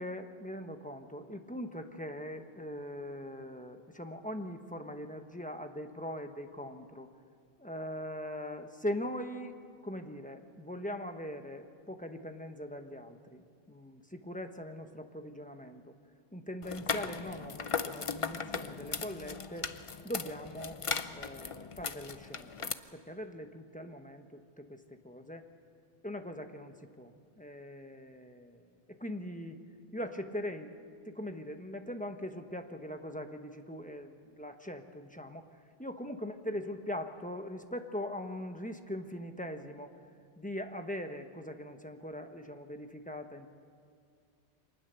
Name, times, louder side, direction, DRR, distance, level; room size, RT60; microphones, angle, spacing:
voice 1, 0.0-7.1 7.6-9.6 9.8-15.8 16.3-19.7 20.0-20.8 21.1-25.5 26.0-29.6 29.9-30.8 31.0-35.5 35.8-39.9 40.4-43.5, left 1 dB, 10° left, 6 dB, 1.0 m, -41 dB
sound 1, 16.6-22.7, left 5 dB, 35° left, 0.6 m, -38 dB
25.0 x 19.5 x 6.9 m, 2.2 s
omnidirectional pair, 1.1 m